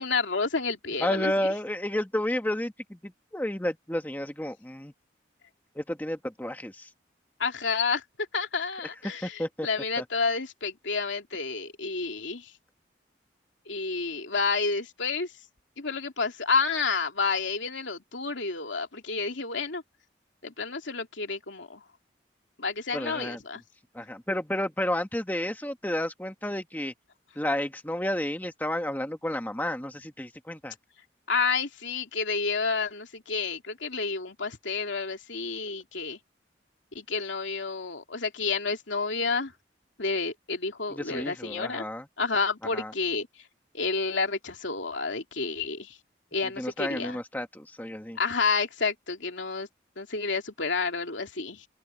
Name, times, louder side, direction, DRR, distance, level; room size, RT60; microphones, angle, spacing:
voice 1, 0.0-1.5 7.4-8.0 8.3-12.5 13.7-15.3 15.8-19.8 20.4-21.8 22.6-23.6 31.3-36.2 36.9-39.5 40.0-41.8 42.2-43.3 43.7-46.0 46.3-47.2 48.2-49.7 50.0-51.7, left 4 dB, 85° left, 2.8 m, -30 dB
voice 2, 1.0-4.9 5.7-6.9 9.2-9.7 10.0-10.1 22.9-23.4 23.9-26.9 27.3-30.7 40.9-42.1 42.7-42.9 46.6-48.2, left 1 dB, 10° left, 1.3 m, -31 dB
head